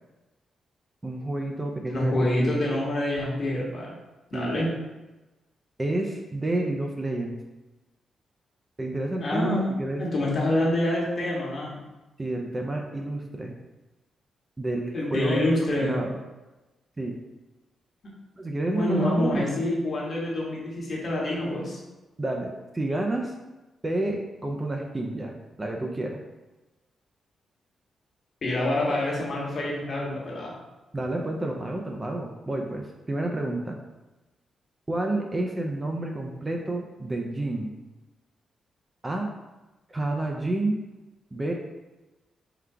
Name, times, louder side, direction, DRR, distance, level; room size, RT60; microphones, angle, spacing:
voice 1, 1.0-2.6 4.3-4.5 5.8-7.4 8.8-10.0 12.2-13.5 14.6-15.5 15.8-16.2 17.0-17.2 18.4-19.7 22.2-23.3 23.8-26.2 30.9-33.8 34.9-37.7 39.0-39.3 39.9-40.8 41.3-41.5, right 1 dB, 15° right, 1 dB, 0.4 m, -29 dB
voice 2, 1.9-3.9 4.3-4.7 9.2-9.7 10.0-11.7 14.9-16.0 18.7-21.8 28.4-30.5, left 1 dB, 45° left, -4 dB, 1.1 m, -26 dB
3.7 x 2.2 x 4.5 m, 1.1 s
wide cardioid pair, 145°, 0 cm